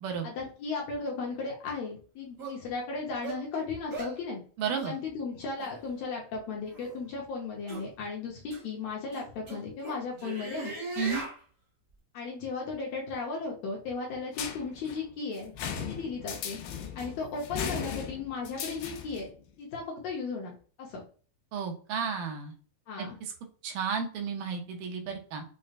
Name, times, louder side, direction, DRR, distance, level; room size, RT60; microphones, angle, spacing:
voice 1, 0.2-4.4 4.8-10.8 12.1-15.5 15.9-16.6 17.0-19.3 19.6-21.0 22.9-23.2, left 4 dB, 70° left, -2 dB, 1.8 m, -36 dB
sound 1, 1.7-1.8 2.4-2.6 3.2-3.4 3.9-4.2 4.7-4.9 5.6-5.7 6.7-6.9 7.7-7.9 8.5-8.6 9.1-11.4, right 2 dB, 45° right, 1.1 m, -38 dB
voice 2, 4.6-4.9 11.0-11.2 21.5-22.5 23.0-23.1 23.6-25.4, right 6 dB, 90° right, 3 dB, 2.3 m, -32 dB
sound 2, 14.3-19.3, left 7 dB, 90° left, 2.3 m, -37 dB
6.3 x 2.1 x 2.4 m, 0.41 s
omnidirectional pair, 3.8 m